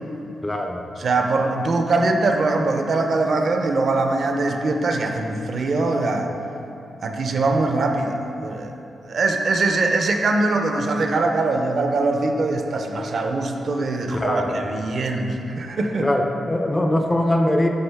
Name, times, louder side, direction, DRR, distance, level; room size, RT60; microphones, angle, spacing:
voice 1, 0.4-0.9 7.4-7.5 14.1-14.7 16.0-17.7, left 1 dB, 15° left, 3 dB, 0.4 m, -22 dB
voice 2, 1.0-6.3 7.0-8.7 9.1-16.1, right 3 dB, 50° right, 4 dB, 0.5 m, -22 dB
10.5 x 3.8 x 3.4 m, 2.8 s
wide cardioid pair, 145°, 0 cm